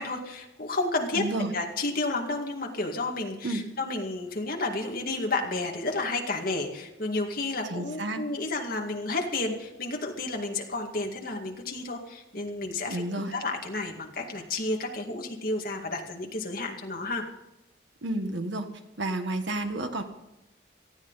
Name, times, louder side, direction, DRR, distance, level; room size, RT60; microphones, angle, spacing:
voice 1, 0.0-17.3, left 2 dB, 50° left, 2 dB, 2.1 m, -31 dB
voice 2, 1.1-1.5 3.4-3.6 7.7-8.2 12.9-13.3 18.0-18.7 19.0-20.0, right 2 dB, 70° right, 6 dB, 1.6 m, -30 dB
18.5 x 14.0 x 4.1 m, 0.94 s
head